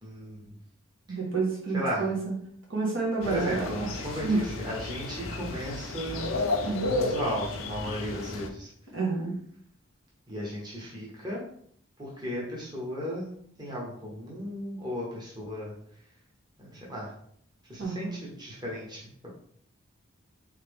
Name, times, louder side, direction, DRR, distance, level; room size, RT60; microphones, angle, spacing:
voice 1, 0.0-0.6 1.1-1.2 1.7-2.1 3.3-6.4 6.8-8.7 10.3-11.4 12.0-13.3 13.6-15.7 16.6-17.1 17.7-19.1, equal, 20° right, -5 dB, 0.9 m, -35 dB
voice 2, 1.1-2.2 2.7-4.4 6.6-6.9 8.9-9.3 17.8-18.1, right 3 dB, 75° right, -3 dB, 1.5 m, -29 dB
sound 1, 3.2-8.5, left 2 dB, 80° left, 0.5 m, -33 dB
3.8 x 3.2 x 3.5 m, 0.64 s
head